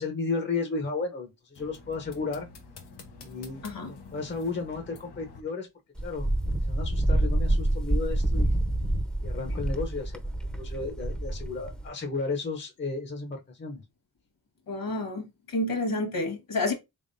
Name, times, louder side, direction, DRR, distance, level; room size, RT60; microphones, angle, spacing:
voice 1, 0.0-2.5 3.2-5.7 6.0-6.3 6.7-8.5 9.2-13.8, left 4 dB, 30° left, 0.8 m, -33 dB
sound 1, 1.6-5.4, left 4 dB, 90° left, 0.9 m, -48 dB
Wind, 6.0-11.9, right 1 dB, ahead, 0.7 m, -27 dB
voice 2, 14.7-16.7, left 2 dB, 60° left, 1.5 m, -29 dB
3.5 x 3.3 x 2.6 m
supercardioid pair, 55°, 38 cm